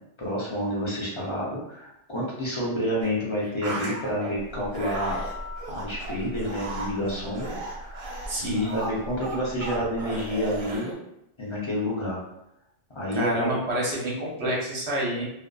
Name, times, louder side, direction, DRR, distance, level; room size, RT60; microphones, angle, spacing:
voice 1, 0.2-5.2 5.7-8.0 8.4-10.9 11.4-12.2 12.9-13.5, equal, 35° left, -6 dB, 0.5 m, -29 dB
sound 1, 3.0-3.1 3.4-4.3 4.7-10.9, right 2 dB, 50° right, 0.4 m, -35 dB
Telephone, 4.3-10.8, equal, 85° left, 1.1 m, -40 dB
voice 2, 8.3-8.8 13.1-15.2, right 1 dB, 65° right, -4 dB, 1.0 m, -28 dB
2.5 x 2.5 x 2.2 m, 0.85 s
omnidirectional pair, 1.2 m